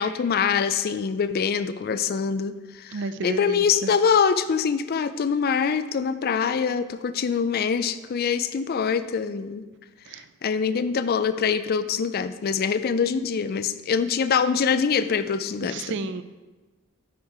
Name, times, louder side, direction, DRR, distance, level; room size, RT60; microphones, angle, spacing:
voice 1, 0.0-3.0 3.2-9.6 10.4-15.8, left 6 dB, 45° left, 13 dB, 0.3 m, -24 dB
voice 2, 2.9-3.9 10.1-10.3 15.6-16.2, right 4 dB, 55° right, 12 dB, 0.4 m, -32 dB
8.4 x 4.4 x 4.8 m, 1.2 s
head